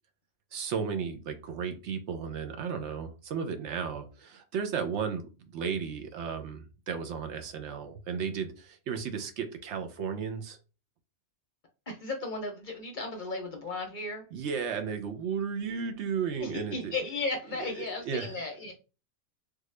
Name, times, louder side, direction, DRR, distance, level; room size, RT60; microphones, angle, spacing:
voice 1, 0.5-10.6 14.3-16.9 17.6-18.3, right 6 dB, 70° right, 0.9 m, -34 dB
voice 2, 11.9-14.3 16.4-18.7, left 3 dB, 50° left, 0.7 m, -35 dB
3.5 x 2.3 x 3.1 m
omnidirectional pair, 1.3 m